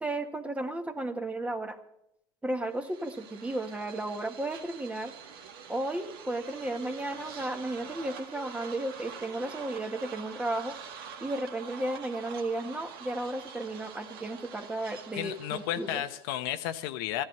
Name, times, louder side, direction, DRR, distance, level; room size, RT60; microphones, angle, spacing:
voice 1, 0.0-1.8 2.4-5.1 5.7-10.8 11.2-16.0, right 2 dB, 10° right, 7 dB, 1.5 m, -34 dB
sound 1, 2.7-16.3, right 6 dB, 85° right, 2.0 m, -46 dB
voice 2, 15.2-17.2, left 12 dB, 75° left, 9 dB, 1.0 m, -33 dB
15.0 x 11.0 x 6.8 m, 0.78 s
supercardioid pair, 110°, 12 cm